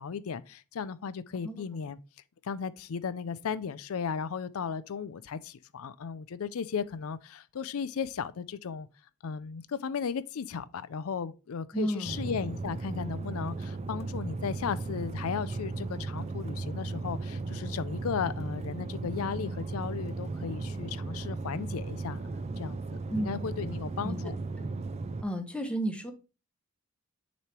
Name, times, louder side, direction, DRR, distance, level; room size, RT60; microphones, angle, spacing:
voice 1, 0.0-2.0 2.4-8.9 9.2-22.8 23.1-24.4, left 6 dB, 70° left, 0.4 m, -35 dB
voice 2, 1.4-1.8 11.7-12.1 23.1-23.4 24.0-24.2 25.2-26.1, right 1 dB, 5° left, 0.9 m, -32 dB
sound 1, 12.0-25.2, right 3 dB, 30° right, 0.4 m, -36 dB
6.7 x 3.2 x 4.4 m
head